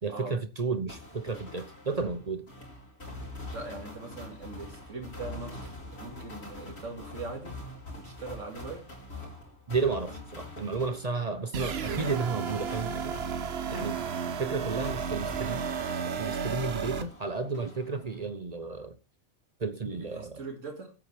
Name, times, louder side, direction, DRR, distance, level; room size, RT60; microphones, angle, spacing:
voice 1, 0.0-2.5 9.7-13.2 13.7-14.0 14.4-19.0 19.6-20.4, right 4 dB, 35° right, 0.9 m, -32 dB
sound 1, 0.9-16.6 17.0-18.3, left 2 dB, 55° left, 4.3 m, -45 dB
voice 2, 3.5-7.6 7.9-8.9 19.9-20.9, right 3 dB, 85° right, 2.5 m, -41 dB
sound 2, 11.5-17.0, right 6 dB, 60° right, 1.1 m, -33 dB
15.5 x 8.8 x 3.3 m
omnidirectional pair, 1.3 m